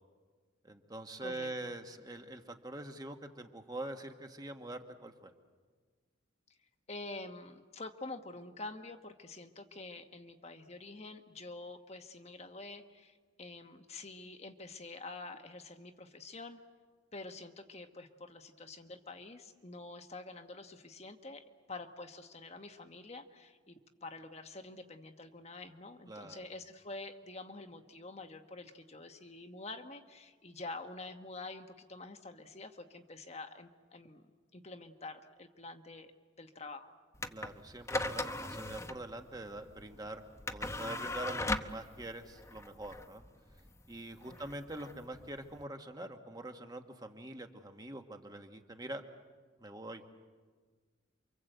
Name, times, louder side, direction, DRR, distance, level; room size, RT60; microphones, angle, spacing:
voice 1, 0.6-5.3 26.1-26.4 37.3-40.2 40.5-43.2 43.9-49.0 49.6-50.0, right 1 dB, 20° right, 5 dB, 1.6 m, -44 dB
voice 2, 1.2-1.7 6.5-6.6 6.9-16.6 17.1-34.2 34.5-36.1 36.4-36.9 44.3-44.4, left 2 dB, 30° left, 6 dB, 1.3 m, -47 dB
sound 1, 37.1-45.6, left 2 dB, 15° left, 0.9 m, -39 dB
29.0 x 25.0 x 8.1 m, 1.5 s
head